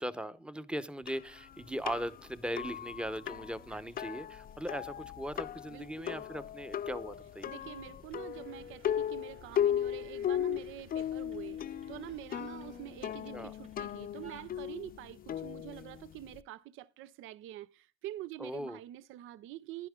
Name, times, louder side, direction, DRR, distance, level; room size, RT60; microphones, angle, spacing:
voice 1, 0.0-7.5 13.3-13.5 18.4-18.8, equal, 5° right, 0.8 m, -39 dB
sound 1, 1.1-16.4, left 10 dB, 45° left, 0.5 m, -37 dB
sound 2, 3.6-4.1 4.4-15.0, right 3 dB, 40° right, 4.1 m, -62 dB
voice 2, 5.7-6.2 7.5-19.9, right 14 dB, 90° right, 0.5 m, -46 dB
sound 3, 8.3-15.1, right 4 dB, 60° right, 2.4 m, -60 dB
11.0 x 10.5 x 3.6 m
cardioid pair, 90°, 20 cm